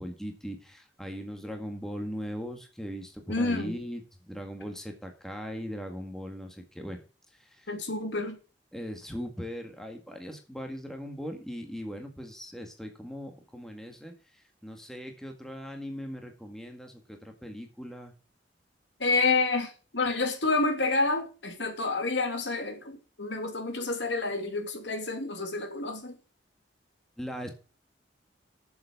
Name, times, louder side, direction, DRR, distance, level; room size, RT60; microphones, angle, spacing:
voice 1, 0.0-4.0 4.3-7.0 7.4-7.7 8.7-14.1 14.6-18.1 27.2-27.5, equal, 5° left, 1.8 m, -39 dB
voice 2, 3.3-3.8 7.7-8.4 19.0-26.1, left 3 dB, 70° left, 2.7 m, -29 dB
8.4 x 7.3 x 7.0 m
head